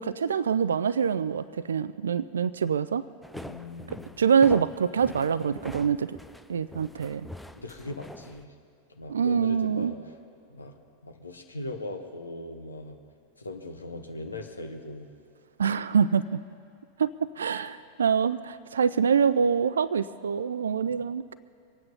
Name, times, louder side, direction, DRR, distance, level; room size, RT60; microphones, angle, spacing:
voice 1, 0.0-3.0 4.2-6.2 6.5-7.3 9.1-9.9 15.6-16.4 17.0-21.3, right 6 dB, 70° right, 15 dB, 0.3 m, -25 dB
sound 1, 3.2-8.4, left 1 dB, ahead, 0.5 m, -44 dB
voice 2, 3.3-4.2 7.5-8.5 8.9-10.0 10.5-10.7 11.0-13.0 13.4-15.1 20.9-21.0, left 2 dB, 80° left, 5 dB, 1.3 m, -39 dB
23.5 x 9.2 x 5.5 m, 2.4 s
figure-of-eight pair, 90°, 0 cm